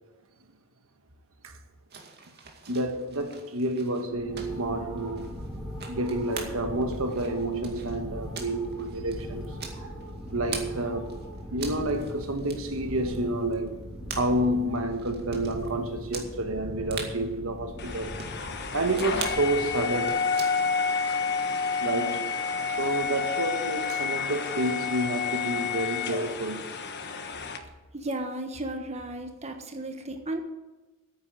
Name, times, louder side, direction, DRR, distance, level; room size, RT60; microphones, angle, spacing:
sound 1, 1.9-10.7 11.0-15.7 16.1-16.3 16.6-16.7 16.9-17.1 17.8-18.4 18.9-19.4 19.8-20.8, right 5 dB, 50° right, 2.2 m, -42 dB
voice 1, 2.7-5.3 5.9-9.9 10.3-11.1 11.5-13.8 14.2-18.1 18.7-20.2 21.8-26.7, right 1 dB, 75° right, 1.4 m, -29 dB
sound 2, 4.1-20.1, equal, 5° right, 3.2 m, -39 dB
sound 3, 17.8-27.6, left 5 dB, 55° left, 1.3 m, -30 dB
voice 2, 27.9-30.4, right 1 dB, 30° right, 1.3 m, -34 dB
9.6 x 8.8 x 9.5 m
head